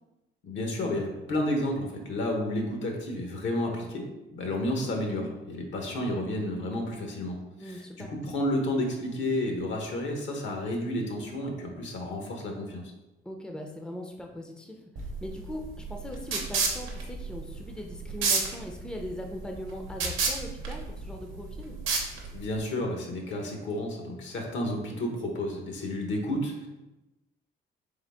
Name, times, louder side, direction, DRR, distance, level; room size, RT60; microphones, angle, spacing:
voice 1, 0.4-7.7 8.1-12.8 22.3-26.7, left 1 dB, 70° left, 2 dB, 1.0 m, -31 dB
voice 2, 7.6-8.1 13.2-21.8, left 1 dB, 5° left, 2 dB, 0.5 m, -40 dB
sound 1, 15.0-22.6, right 4 dB, 85° right, 0.8 m, -31 dB
3.8 x 3.4 x 3.4 m, 1.0 s
cardioid pair, 90°, 20 cm